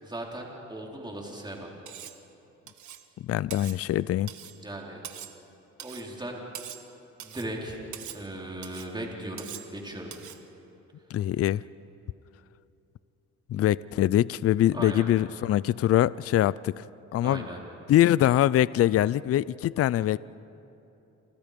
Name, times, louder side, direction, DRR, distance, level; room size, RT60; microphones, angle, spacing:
voice 1, 0.0-1.7 4.6-5.0 5.8-6.4 7.2-7.8 8.1-10.1 14.7-15.1 17.2-17.6, right 1 dB, 15° right, -1 dB, 4.4 m, -37 dB
Cutlery silverware, 1.9-2.2 2.7-3.1 3.5-3.8 4.3-4.6 5.0-5.4 5.8-6.1 6.5-6.9 7.2-7.5 7.9-8.2 8.6-8.9 9.4-9.7 10.1-10.4, right 11 dB, 75° right, 1.5 m, -43 dB
voice 2, 3.2-4.3 11.1-11.6 13.5-16.8 17.1-17.4 17.9-20.2, left 12 dB, 50° left, 20 dB, 0.5 m, -23 dB
28.5 x 28.0 x 5.3 m, 2.9 s
cardioid pair, 90°, 30 cm